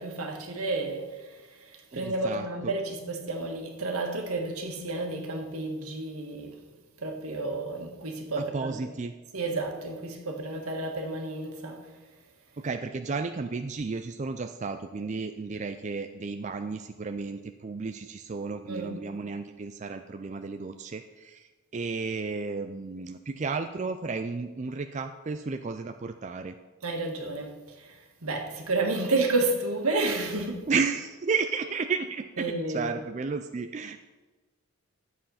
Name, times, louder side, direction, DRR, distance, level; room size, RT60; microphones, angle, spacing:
voice 1, 0.0-6.6 7.0-8.8 9.3-11.9 18.7-19.0 26.8-30.6 32.4-32.9, right 2 dB, 80° right, 2 dB, 1.8 m, -31 dB
voice 2, 1.9-2.7 8.4-9.1 12.6-26.5 30.7-34.0, right 4 dB, 30° right, 7 dB, 0.4 m, -33 dB
11.0 x 7.7 x 5.7 m, 1.3 s
head